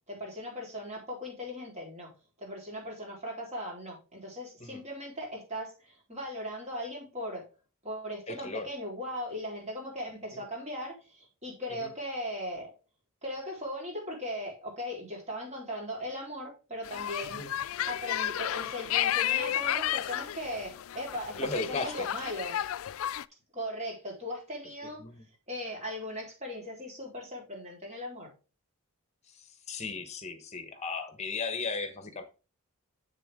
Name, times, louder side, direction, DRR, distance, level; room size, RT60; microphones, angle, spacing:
voice 1, 0.1-2.1 2.4-7.4 7.8-12.7 13.2-17.4 17.9-22.6 23.5-25.0 25.5-28.3, equal, 30° right, 3.9 m, -38 dB
voice 2, 8.3-8.7 10.3-10.4 11.8-11.9 17.3-17.5 21.4-22.1 25.0-25.2 29.3-32.2, left 3 dB, 30° left, 1.2 m, -36 dB
sound 1, 16.8-23.2, left 12 dB, 65° left, 0.3 m, -32 dB
7.5 x 6.7 x 3.7 m
head